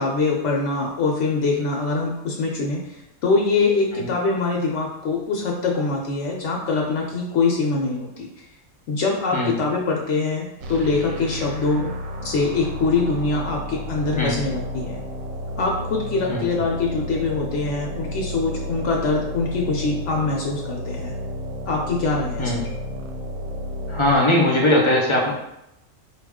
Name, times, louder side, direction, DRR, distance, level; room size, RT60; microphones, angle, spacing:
voice 1, 0.0-8.3 8.9-11.9 12.2-15.0 15.6-21.1 21.7-22.7, left 3 dB, 65° left, 0 dB, 0.9 m, -23 dB
sound 1, 10.6-24.2, left 1 dB, 90° right, 1.0 m, -32 dB
voice 2, 23.9-25.3, left 1 dB, 30° left, -3 dB, 0.6 m, -19 dB
4.5 x 2.3 x 3.5 m, 0.84 s
omnidirectional pair, 1.4 m